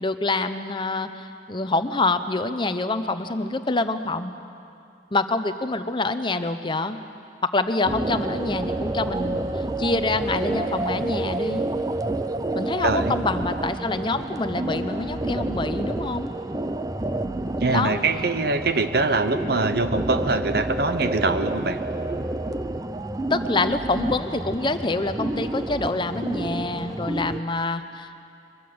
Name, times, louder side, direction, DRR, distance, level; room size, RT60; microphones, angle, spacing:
voice 1, 0.0-4.3 5.1-7.0 7.4-11.7 12.5-16.3 17.7-18.0 23.3-28.2, left 3 dB, 25° left, 9 dB, 0.8 m, -26 dB
sound 1, 7.8-27.4, right 2 dB, 20° right, 0.6 m, -29 dB
voice 2, 12.8-13.2 17.6-21.8, right 3 dB, 60° right, 10 dB, 1.0 m, -23 dB
23.0 x 22.0 x 7.9 m, 2.6 s
head